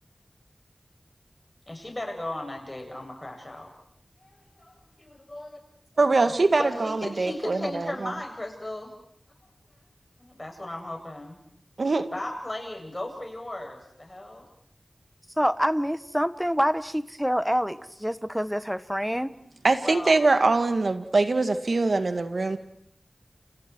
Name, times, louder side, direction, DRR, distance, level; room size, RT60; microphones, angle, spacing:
voice 1, 1.7-3.7 4.2-5.6 6.2-6.3 6.6-8.9 10.2-11.4 12.1-14.4 19.8-20.1, left 1 dB, 30° left, 2 dB, 7.8 m, -36 dB
voice 2, 6.0-8.1 11.8-12.1 19.6-22.6, right 3 dB, 75° right, 8 dB, 2.1 m, -23 dB
voice 3, 15.4-19.3, equal, 5° right, 13 dB, 1.3 m, -26 dB
29.5 x 28.5 x 4.7 m, 0.68 s
wide cardioid pair, 55°, 0 cm